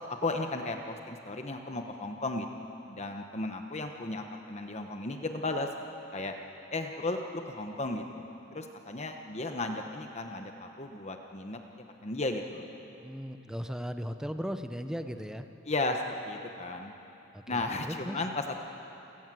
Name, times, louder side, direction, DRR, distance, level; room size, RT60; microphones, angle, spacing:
voice 1, 0.0-2.6 2.9-5.7 6.1-6.3 6.7-8.3 8.5-11.6 12.0-12.7 15.6-16.9 17.5-18.7, left 2 dB, 35° left, 4 dB, 1.2 m, -35 dB
voice 2, 13.0-15.4 17.3-18.2, equal, 5° right, 8 dB, 0.8 m, -37 dB
28.5 x 17.5 x 7.7 m, 3.0 s
head